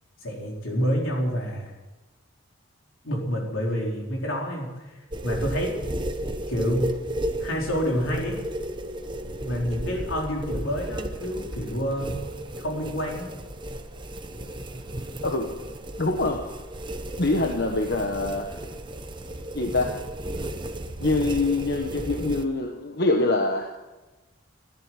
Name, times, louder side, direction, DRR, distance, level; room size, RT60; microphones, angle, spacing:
voice 1, 0.2-1.7 3.0-4.8 5.2-5.7 6.5-7.0 7.4-8.4 9.4-12.2 12.6-13.3, equal, 85° left, -1 dB, 4.3 m, -28 dB
sound 1, 5.1-22.4, right 1 dB, 25° right, 1.0 m, -34 dB
voice 2, 15.2-15.5 16.0-16.6 17.2-18.7 19.5-20.0 21.0-23.8, left 2 dB, 55° left, 3 dB, 1.2 m, -25 dB
14.0 x 11.0 x 8.9 m, 1.1 s
head